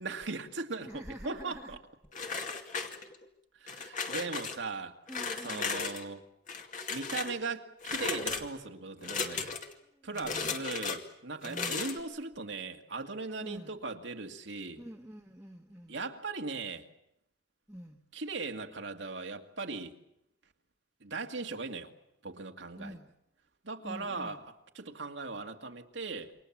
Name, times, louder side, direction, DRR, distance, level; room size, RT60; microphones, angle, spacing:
voice 1, 0.0-1.8 3.6-4.9 5.4-6.2 6.9-9.6 10.0-14.8 15.9-16.9 18.1-20.0 21.0-21.9 22.2-23.0 23.6-26.3, right 3 dB, 85° right, 4 dB, 2.1 m, -39 dB
voice 2, 0.8-1.8 5.1-5.8 10.0-10.6 11.4-11.9 13.4-13.8 14.8-16.0 17.7-18.0 22.8-23.1 23.8-24.4, equal, 5° right, -2 dB, 1.5 m, -46 dB
sound 1, 2.1-3.3 3.7-4.6 5.1-6.0 6.5-7.4 7.8-8.5 9.0-9.7 10.2-11.0 11.4-12.0, left 5 dB, 45° left, 2.4 m, -35 dB
28.0 x 24.5 x 7.4 m, 0.82 s
head